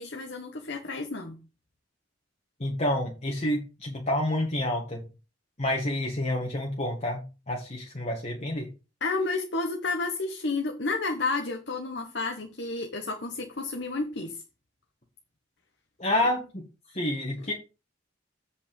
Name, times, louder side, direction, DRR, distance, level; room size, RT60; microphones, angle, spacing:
voice 1, 0.0-1.4 9.0-14.4, left 3 dB, 60° left, 1.3 m, -31 dB
voice 2, 2.6-5.0 5.6-8.7 16.0-16.7 16.9-17.5, left 1 dB, 35° left, 1.6 m, -29 dB
8.1 x 5.7 x 5.4 m
head